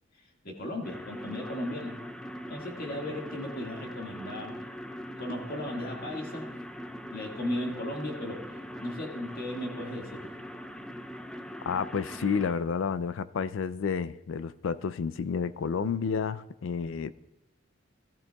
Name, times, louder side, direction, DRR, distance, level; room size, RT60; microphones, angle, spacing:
voice 1, 0.4-2.0 2.5-4.7 5.2-6.6 7.1-8.5 8.8-10.3, left 1 dB, 45° left, 0 dB, 1.9 m, -36 dB
sound 1, 0.8-12.5, equal, 5° left, 0.4 m, -41 dB
voice 2, 11.7-17.1, left 6 dB, 70° left, 15 dB, 0.4 m, -30 dB
17.0 x 13.5 x 2.3 m, 0.96 s
head